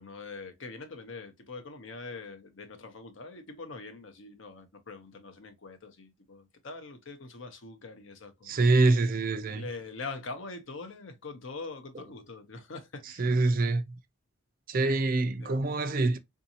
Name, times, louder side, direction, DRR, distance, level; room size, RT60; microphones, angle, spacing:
voice 1, 0.0-8.9 9.4-13.3 15.4-15.6, left 3 dB, 70° left, 0.7 m, -43 dB
voice 2, 8.5-9.6 13.2-13.8 14.7-16.2, right 2 dB, 45° right, 0.4 m, -25 dB
3.6 x 2.7 x 2.7 m
head